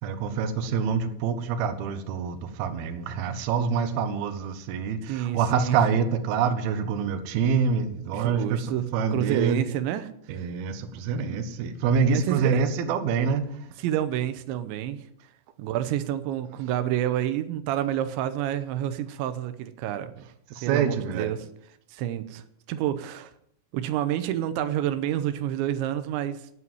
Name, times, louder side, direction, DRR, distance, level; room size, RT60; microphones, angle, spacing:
voice 1, 0.0-9.6 10.3-13.6 20.5-21.3, right 6 dB, 70° right, 8 dB, 2.6 m, -26 dB
voice 2, 5.1-5.8 8.1-8.9 9.1-10.5 12.1-12.6 13.8-15.1 15.6-20.3 20.6-21.5 21.9-23.3 23.7-26.5, right 11 dB, 90° right, 10 dB, 3.0 m, -29 dB
9.6 x 8.4 x 9.1 m, 0.73 s
omnidirectional pair, 5.2 m